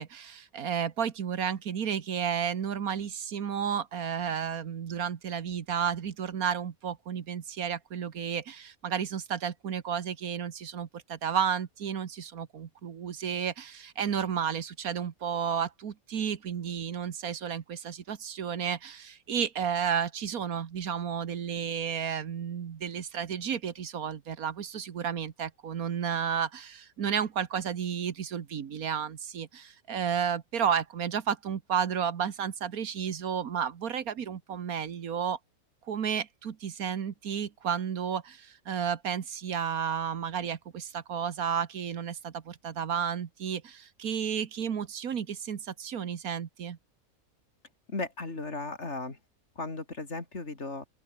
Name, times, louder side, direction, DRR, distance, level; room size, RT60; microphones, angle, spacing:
voice 1, 0.0-35.4 35.9-46.8, right 8 dB, 80° right, 1.7 m, -32 dB
voice 2, 47.9-49.2 49.6-50.9, left 3 dB, 50° left, 3.5 m, -36 dB
open air
omnidirectional pair, 1.5 m